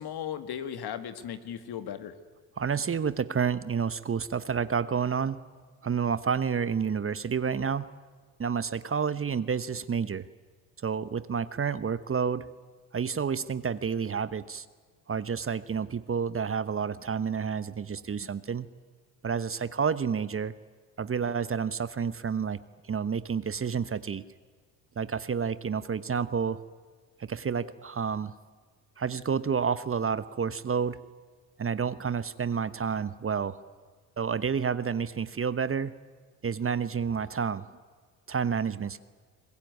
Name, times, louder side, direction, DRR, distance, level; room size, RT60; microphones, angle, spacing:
voice 1, 0.0-2.2, left 9 dB, 55° left, 10 dB, 2.1 m, -36 dB
voice 2, 2.6-5.4 5.8-7.9 8.4-10.3 10.8-12.5 12.9-14.6 15.1-18.7 19.2-20.5 21.0-22.6 22.9-24.2 25.0-26.6 27.2-28.3 29.0-31.0 31.6-33.6 34.2-35.9 36.4-37.7 38.3-39.0, right 6 dB, 30° right, 15 dB, 1.1 m, -29 dB
24.0 x 21.0 x 9.5 m, 1.5 s
hypercardioid pair, 65°, 45 cm